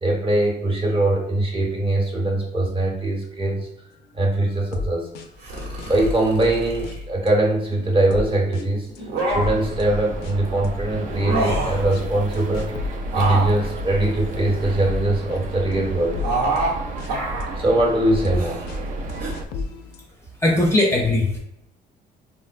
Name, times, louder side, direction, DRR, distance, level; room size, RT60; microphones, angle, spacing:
voice 1, 0.0-3.7 4.1-5.1 5.8-8.9 9.3-12.7 13.1-16.2 17.6-18.7, right 1 dB, 30° right, -1 dB, 0.9 m, -22 dB
sound 1, 4.4-4.9 5.1-5.3 5.6-7.3 7.7-10.3 10.6-13.7 14.5-17.4 18.0-18.4 18.7-18.8 19.1-20.0, left 4 dB, 75° left, 0.4 m, -34 dB
sound 2, 5.4-7.1 8.9-9.7 11.1-11.9 13.0-14.8 16.2-16.8 17.0-17.6 18.3-18.6 19.2-19.3, right 2 dB, 75° right, 0.9 m, -27 dB
sound 3, 9.3-19.5, right 1 dB, 50° right, 0.4 m, -32 dB
voice 2, 20.4-21.4, left 2 dB, 15° left, -1 dB, 0.5 m, -19 dB
3.8 x 2.1 x 2.4 m, 0.80 s
cardioid pair, 110°, 17 cm